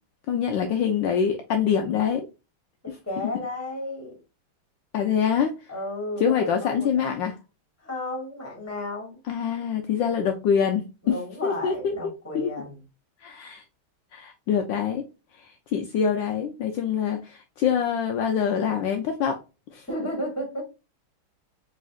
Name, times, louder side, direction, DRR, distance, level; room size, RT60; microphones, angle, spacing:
voice 1, 0.3-2.3 4.9-5.7 6.2-7.4 9.3-12.0 12.3-12.5 13.2-13.6 14.1-15.1 15.4-19.4 19.7-19.9, left 7 dB, 75° left, 1.2 m, -25 dB
voice 2, 2.8-4.2 5.7-7.1 7.8-9.2 11.0-12.9 19.9-20.6, left 1 dB, 5° left, 2.1 m, -33 dB
4.1 x 3.8 x 2.3 m
omnidirectional pair, 2.3 m